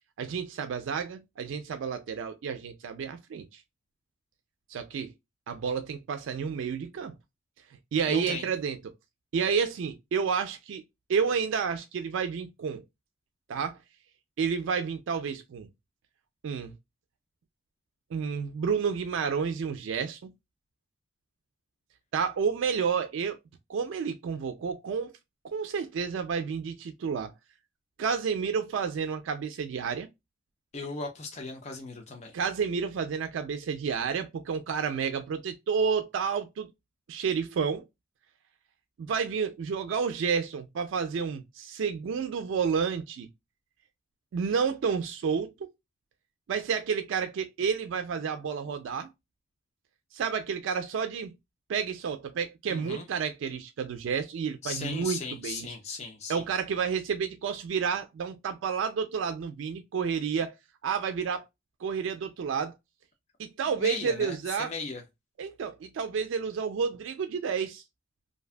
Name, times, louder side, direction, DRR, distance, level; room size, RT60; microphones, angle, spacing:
voice 1, 0.2-3.6 4.7-5.1 5.5-7.1 7.9-8.8 9.3-10.8 11.1-12.8 13.5-13.8 14.4-15.7 16.4-16.7 18.1-20.3 22.1-23.4 23.7-25.1 25.4-27.3 28.0-30.1 32.3-36.7 37.1-37.8 39.0-43.3 44.3-45.7 46.5-49.1 50.1-51.3 51.7-55.7 56.3-60.5 60.8-61.4 61.8-62.7 63.4-64.7 65.4-67.8, right 6 dB, 80° right, 0.3 m, -30 dB
voice 2, 8.1-8.5 30.7-32.3 52.7-53.1 54.6-56.4 63.8-65.0, left 4 dB, 35° left, 0.5 m, -37 dB
2.6 x 2.2 x 2.3 m
head